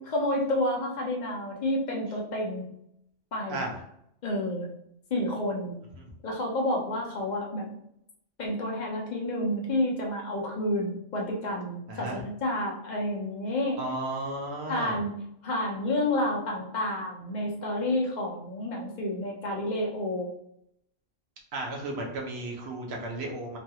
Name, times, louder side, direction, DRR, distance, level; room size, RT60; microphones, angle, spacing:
voice 1, 0.1-2.7 3.3-3.6 4.2-4.7 5.1-5.8 6.2-7.7 8.4-13.8 14.7-15.1 15.4-20.3, left 1 dB, 55° left, -2 dB, 0.5 m, -30 dB
voice 2, 3.5-3.8 6.0-6.1 11.9-12.2 13.8-15.0 21.5-23.6, right 2 dB, 60° right, 0 dB, 0.9 m, -34 dB
3.1 x 2.3 x 2.7 m, 0.75 s
omnidirectional pair, 1.4 m